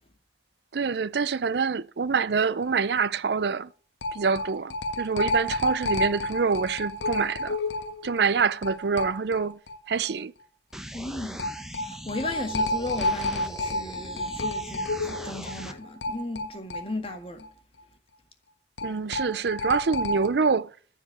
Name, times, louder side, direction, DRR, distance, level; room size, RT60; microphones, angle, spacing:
voice 1, 0.7-3.7 4.1-7.6 8.0-9.6 9.9-10.3 18.8-20.7, right 5 dB, 70° right, 0.5 m, -26 dB
sound 1, 2.7-2.8 3.0-3.1 4.0-9.8 10.0-10.1 11.4-17.5 17.8-17.9 18.8-20.3, left 1 dB, 80° left, 1.5 m, -30 dB
sound 2, 10.7-15.7, equal, 5° right, 0.9 m, -41 dB
voice 2, 10.9-11.5 11.8-17.5, left 2 dB, 30° left, 1.8 m, -35 dB
14.0 x 5.0 x 9.2 m
head